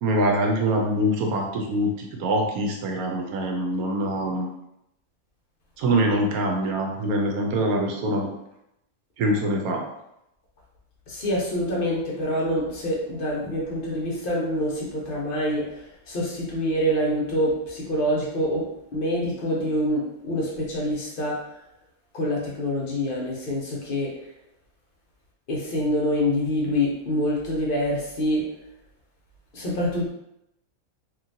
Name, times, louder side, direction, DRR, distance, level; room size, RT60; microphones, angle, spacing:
voice 1, 0.0-4.5 5.8-8.3 9.2-9.8, right 1 dB, 80° right, 1 dB, 1.1 m, -24 dB
voice 2, 11.1-21.4 22.1-24.2 25.5-28.5 29.5-30.1, equal, 50° left, -3 dB, 0.7 m, -26 dB
3.0 x 2.5 x 2.6 m, 0.82 s
omnidirectional pair, 1.5 m